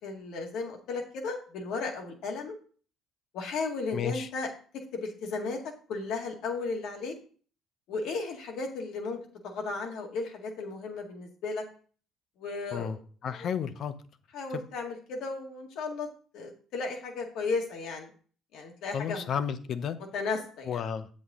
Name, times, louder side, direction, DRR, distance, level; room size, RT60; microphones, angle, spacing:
voice 1, 0.0-2.6 3.3-4.5 4.9-5.6 5.9-7.1 7.9-9.2 9.4-11.6 12.4-13.0 13.4-13.5 14.3-16.1 16.3-18.1 18.5-19.3 20.1-20.8, left 4 dB, 75° left, 2 dB, 1.9 m, -34 dB
voice 2, 3.9-4.3 12.7-13.9 18.9-20.0 20.6-21.1, left 7 dB, 60° left, 11 dB, 0.8 m, -32 dB
7.9 x 6.3 x 3.7 m, 0.42 s
supercardioid pair, 80°, 0 cm